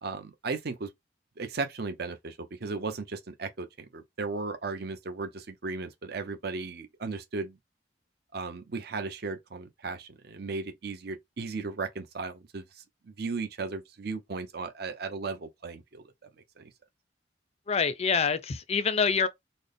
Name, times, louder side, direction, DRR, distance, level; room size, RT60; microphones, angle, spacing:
voice 1, 0.0-0.9 1.4-7.6 8.3-12.6 13.0-16.0 16.6-16.7, right 4 dB, 55° right, 0.7 m, -36 dB
voice 2, 17.7-19.3, left 5 dB, 35° left, 0.4 m, -26 dB
4.0 x 2.1 x 3.4 m
head